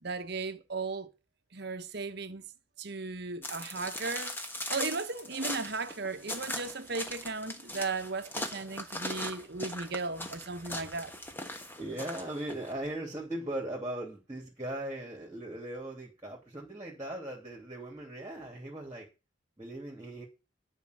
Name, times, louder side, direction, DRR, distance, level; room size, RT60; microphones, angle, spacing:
voice 1, 0.0-1.1 1.5-2.4 2.8-4.4 4.7-11.1, right 3 dB, 55° right, 1.1 m, -36 dB
sound 1, 3.4-12.7, left 1 dB, 10° left, 1.3 m, -39 dB
voice 2, 11.8-19.1 19.6-20.2, right 1 dB, 15° right, 2.8 m, -39 dB
11.0 x 5.5 x 7.8 m
head